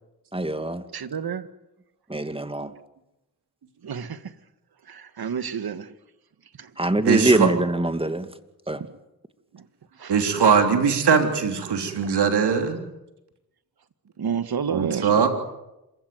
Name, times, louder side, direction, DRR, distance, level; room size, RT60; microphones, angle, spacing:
voice 1, 0.3-0.8 2.1-2.7 6.8-8.3 8.7-8.8, right 2 dB, 15° right, 2.4 m, -23 dB
voice 2, 0.9-1.5 3.8-4.3 4.9-5.9 6.6-6.7 9.5-9.7 10.0-10.1 12.0-12.1 14.2-15.3, right 7 dB, 65° right, 1.8 m, -30 dB
voice 3, 7.1-7.5 10.1-12.8 14.7-15.3, right 6 dB, 85° right, 3.5 m, -20 dB
27.0 x 16.0 x 9.4 m
cardioid pair, 50°, 39 cm